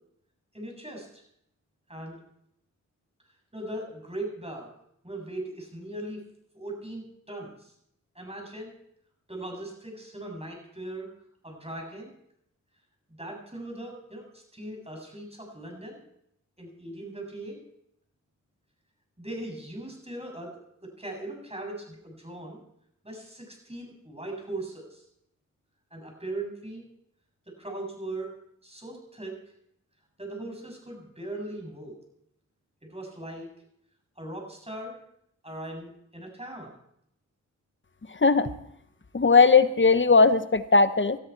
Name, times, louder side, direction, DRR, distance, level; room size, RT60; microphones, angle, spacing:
voice 1, 0.5-1.2 1.9-2.2 3.5-4.7 5.0-6.2 6.5-7.7 8.1-8.7 9.3-11.1 11.4-12.1 13.1-16.0 16.6-17.6 19.2-20.6 21.0-22.6 23.0-25.0 25.9-26.8 27.6-28.3 28.6-29.3 30.2-32.0 32.9-33.5 34.2-35.0 35.4-36.7, right 1 dB, 20° right, 1 dB, 7.6 m, -39 dB
voice 2, 39.1-41.2, left 4 dB, 40° left, 12 dB, 1.1 m, -18 dB
19.5 x 13.0 x 4.7 m, 0.73 s
cardioid pair, 40°, 31 cm